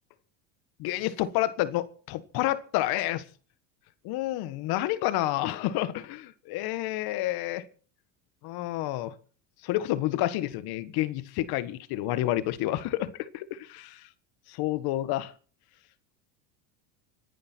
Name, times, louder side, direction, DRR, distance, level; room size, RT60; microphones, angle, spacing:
voice 1, 0.8-3.2 4.0-7.6 8.4-9.1 9.6-14.0 14.5-15.3, left 15 dB, 60° left, 1.6 m, -29 dB
26.0 x 10.5 x 4.5 m
supercardioid pair, 90°, 41 cm